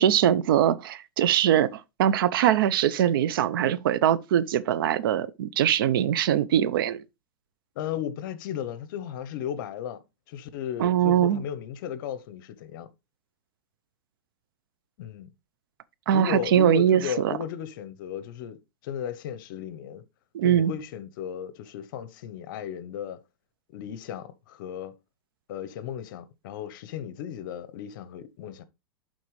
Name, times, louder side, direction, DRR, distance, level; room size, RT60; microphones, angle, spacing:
voice 1, 0.0-7.0 10.8-11.4 16.1-17.4 20.3-20.7, right 10 dB, 75° right, 0.6 m, -22 dB
voice 2, 7.8-10.0 10.3-12.9 15.0-15.3 16.1-18.6 18.8-20.0 20.4-23.2 23.7-24.9 25.5-28.6, left 9 dB, 60° left, 0.8 m, -35 dB
11.0 x 3.9 x 3.1 m
supercardioid pair, 140°, 12 cm